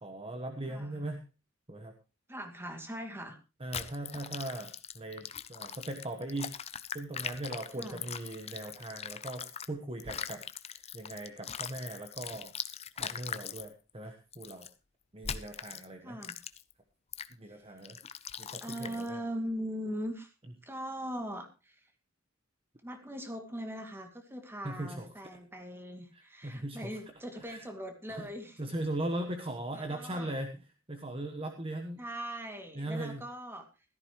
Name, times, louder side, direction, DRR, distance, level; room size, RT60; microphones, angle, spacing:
voice 1, 0.0-1.2 1.7-1.9 3.6-6.5 6.9-10.4 10.9-12.5 13.0-14.7 15.1-16.2 17.4-18.0 18.4-19.2 24.6-25.1 26.1-27.0 27.5-27.6 28.1-28.3 28.6-30.6 30.9-32.0 32.7-33.2, right 1 dB, 25° right, 5 dB, 1.2 m, -39 dB
voice 2, 0.7-1.1 2.3-3.4 7.8-8.0 16.0-16.4 17.5-17.6 18.6-20.3 20.6-21.9 22.8-28.6 29.7-30.3 32.0-33.7, equal, 10° right, 5 dB, 2.3 m, -40 dB
sound 1, 3.7-9.7 10.0-13.7 14.3-14.7 15.2-15.9 16.2-16.7 17.1-17.3 17.8-19.1, left 8 dB, 30° left, 0.7 m, -41 dB
16.0 x 14.0 x 3.1 m, 0.30 s
head